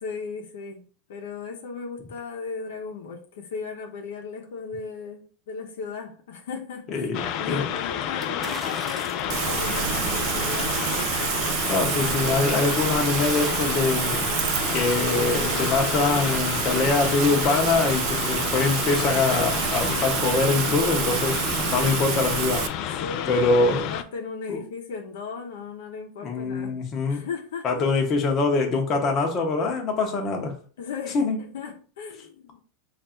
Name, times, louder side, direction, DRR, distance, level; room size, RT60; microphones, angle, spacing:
voice 1, 0.0-0.8 1.1-11.0 21.6-22.1 23.0-26.8 27.0-27.7 30.8-32.6, left 5 dB, 85° left, 2 dB, 0.8 m, -36 dB
voice 2, 6.9-7.6 11.7-14.3 14.7-21.4 21.7-23.0 23.3-23.9 24.5-24.6 26.2-27.3 27.6-30.6 31.1-31.4, left 3 dB, 30° left, 2 dB, 0.8 m, -24 dB
sound 1, 7.1-24.0, left 10 dB, 50° left, 0.3 m, -30 dB
sound 2, 8.2-9.4 10.0-10.1 11.7-12.1 12.5-14.0 14.4-14.5, right 3 dB, 15° right, 0.7 m, -39 dB
Rain, 9.3-22.7, right 11 dB, 55° right, 0.3 m, -28 dB
3.2 x 2.5 x 4.3 m, 0.40 s
supercardioid pair, 135°, 0 cm